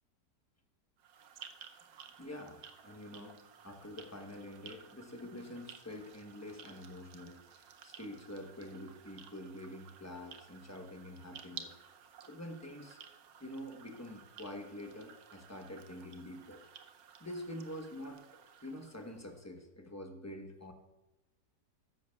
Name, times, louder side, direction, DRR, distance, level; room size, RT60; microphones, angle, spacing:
sound 1, 1.0-19.5, right 7 dB, 65° right, 1.1 m, -55 dB
voice 1, 2.2-3.4 3.6-11.7 12.3-13.0 13.4-16.6 17.2-20.7, left 1 dB, 15° left, 3 dB, 0.8 m, -46 dB
13.5 x 10.0 x 2.4 m, 1.1 s
omnidirectional pair, 1.8 m